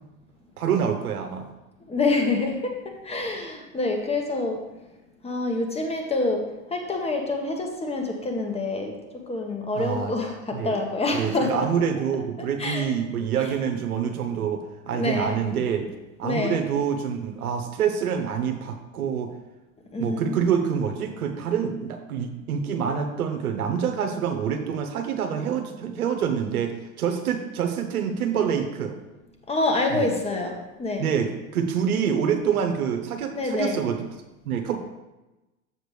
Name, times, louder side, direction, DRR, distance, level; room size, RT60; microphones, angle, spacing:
voice 1, 0.6-1.5 9.8-10.1 10.5-10.8 11.2-15.8 16.2-19.3 20.0-29.0 29.9-30.1 31.0-34.0 34.4-34.8, right 7 dB, 90° right, 5 dB, 1.1 m, -26 dB
voice 2, 1.9-2.7 3.0-4.6 5.2-6.4 6.7-11.7 12.6-12.9 14.9-15.3 16.2-16.6 19.9-20.4 29.5-31.1 33.3-33.8, left 2 dB, 15° left, 3 dB, 1.3 m, -26 dB
7.4 x 6.7 x 3.3 m, 1.0 s
hypercardioid pair, 105°, 42 cm